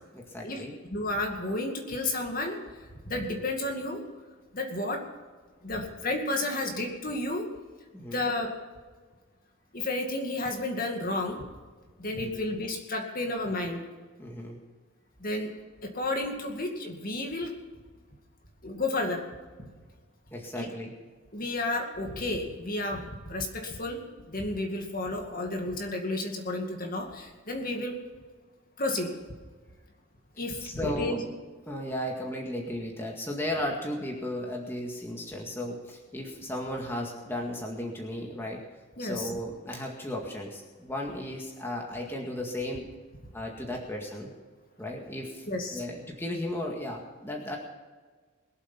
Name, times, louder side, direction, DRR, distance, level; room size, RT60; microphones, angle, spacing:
voice 1, 0.1-0.7 7.9-8.2 12.1-12.4 14.2-14.6 20.3-20.9 22.1-22.2 30.6-31.2 31.7-38.6 39.0-42.9 43.3-44.3 44.8-47.6, left 1 dB, 10° left, 0 dB, 1.9 m, -35 dB
voice 2, 0.9-2.6 3.1-4.0 4.5-5.0 5.6-7.5 8.0-8.5 9.7-11.4 12.0-13.8 15.2-15.5 15.8-17.5 18.6-19.2 19.6-19.7 20.6-20.7 21.3-24.0 24.3-27.9 28.8-29.1 30.4-31.2 39.0-39.3 45.5-45.8, left 2 dB, 40° left, 2 dB, 2.2 m, -31 dB
22.0 x 8.1 x 5.9 m, 1.4 s
head